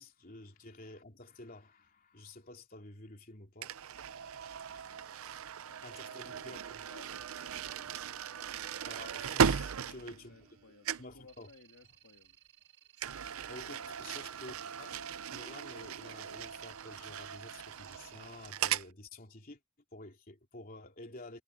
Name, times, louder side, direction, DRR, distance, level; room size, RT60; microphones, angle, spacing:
voice 1, 0.0-3.7 5.8-6.8 8.9-10.3 11.0-11.5 13.5-19.6 19.9-21.4, left 2 dB, 40° left, 3.1 m, -50 dB
sound 1, 3.6-10.6 10.8-11.2 13.0-18.9, right 7 dB, 75° right, 0.6 m, -37 dB
voice 2, 4.6-5.1 5.7-8.8 9.8-12.4 13.6-14.4, left 3 dB, 70° left, 2.5 m, -61 dB
sound 2, 11.3-18.1, right 10 dB, 60° right, 4.9 m, -62 dB
head